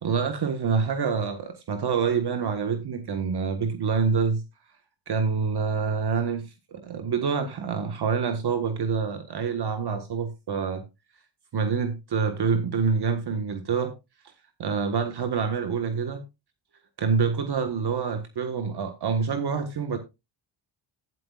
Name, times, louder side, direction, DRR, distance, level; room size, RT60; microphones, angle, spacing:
voice 1, 0.0-4.4 5.1-10.8 11.5-13.9 14.6-16.2 17.0-20.0, right 5 dB, 50° right, 1.5 m, -26 dB
12.5 x 9.7 x 2.4 m
supercardioid pair, 65°, 49 cm